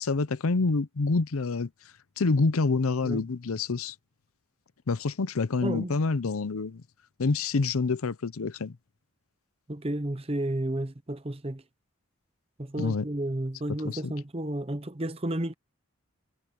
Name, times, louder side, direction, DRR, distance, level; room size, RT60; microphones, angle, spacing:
voice 1, 0.0-1.7 2.2-3.9 4.9-6.8 7.2-8.8 12.8-13.1 13.8-14.1, left 3 dB, 80° left, 0.7 m, -27 dB
voice 2, 5.6-5.9 9.7-11.6 12.6-15.5, right 1 dB, 25° right, 0.8 m, -32 dB
head